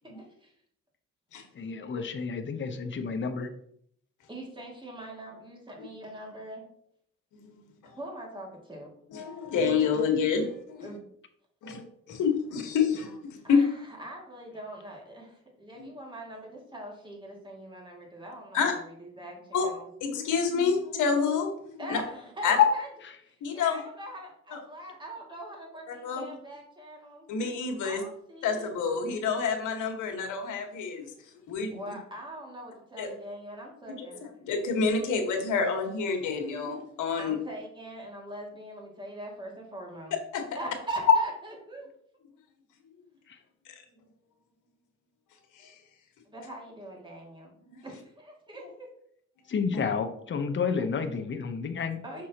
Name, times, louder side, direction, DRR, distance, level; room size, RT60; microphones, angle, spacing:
voice 1, 0.2-0.5 4.3-6.6 8.0-8.9 10.8-11.0 13.4-19.9 21.8-22.9 23.2-27.3 27.8-28.8 31.7-34.2 37.2-40.2 40.6-41.9 46.3-47.5 47.8-48.9 52.0-52.3, right 1 dB, 15° right, -1 dB, 2.2 m, -42 dB
voice 2, 1.5-3.5 11.7-11.8 43.3-43.4 49.5-52.0, left 5 dB, 40° left, 6 dB, 0.9 m, -31 dB
voice 3, 9.1-10.9 11.6-13.6 15.8-15.9 18.5-18.7 19.5-19.7 20.0-22.0 22.4-22.6 23.4-23.8 24.5-24.6 25.9-26.2 27.3-28.0 28.4-31.1 31.5-31.7 33.0-33.1 33.9-34.1 34.4-37.3 40.3-40.4 41.1-41.2 43.6-43.8 45.5-45.7 49.7-49.8, left 5 dB, 80° left, 4 dB, 1.5 m, -28 dB
6.1 x 6.1 x 2.9 m, 0.67 s
cardioid pair, 90°, 30 cm